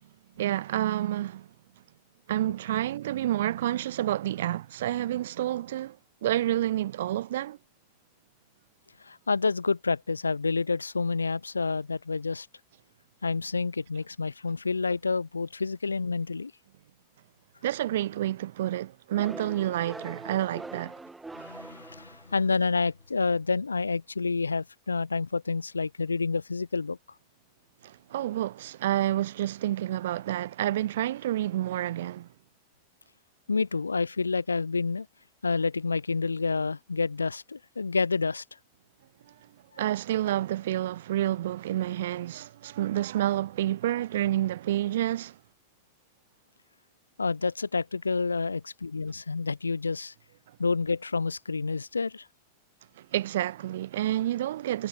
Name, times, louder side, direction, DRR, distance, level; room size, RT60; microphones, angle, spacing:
voice 1, 0.4-1.5 2.3-6.0 6.2-7.6 17.6-20.9 27.8-32.3 39.8-45.4 53.0-54.9, right 13 dB, 60° right, 0.4 m, -29 dB
voice 2, 9.1-12.5 13.2-16.5 21.3-27.0 33.5-35.1 35.4-38.4 47.2-50.1 50.6-52.2, left 4 dB, 75° left, 1.5 m, -28 dB
sound 1, 19.1-22.7, right 3 dB, 10° right, 1.0 m, -43 dB
figure-of-eight pair, 90°, 0 cm